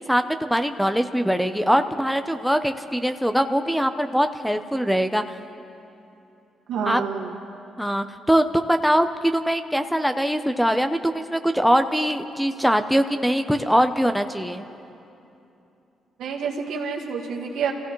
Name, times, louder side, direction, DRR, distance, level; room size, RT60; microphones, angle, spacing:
voice 1, 0.1-5.2 6.9-7.0 7.8-14.6, equal, ahead, 9 dB, 0.6 m, -22 dB
voice 2, 6.7-7.4 16.2-17.7, right 6 dB, 80° right, 0 dB, 1.7 m, -28 dB
28.0 x 16.0 x 3.1 m, 2.8 s
cardioid pair, 80°, 0 cm